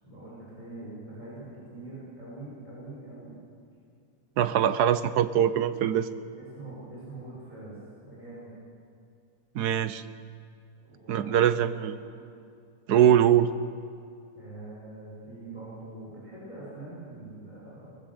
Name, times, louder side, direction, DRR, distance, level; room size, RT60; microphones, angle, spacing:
voice 1, 0.0-3.3 6.3-8.6 10.8-11.6 12.0-12.3 14.3-18.0, right 2 dB, 20° left, -7 dB, 7.0 m, -44 dB
voice 2, 4.4-6.1 9.5-10.0 11.1-12.0 12.9-13.5, right 10 dB, 75° right, 12 dB, 1.4 m, -22 dB
22.0 x 19.5 x 7.9 m, 2.3 s
omnidirectional pair, 1.8 m